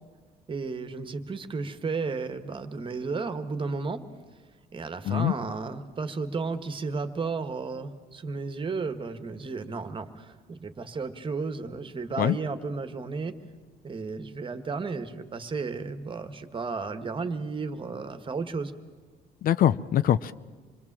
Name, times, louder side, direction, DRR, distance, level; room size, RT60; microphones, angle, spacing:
voice 1, 0.5-4.0 4.7-13.4 13.8-18.7, right 4 dB, 30° right, 9 dB, 1.6 m, -33 dB
voice 2, 19.4-20.3, left 11 dB, 60° left, 15 dB, 0.7 m, -23 dB
27.0 x 21.5 x 7.5 m, 1.4 s
cardioid pair, 110°, 17 cm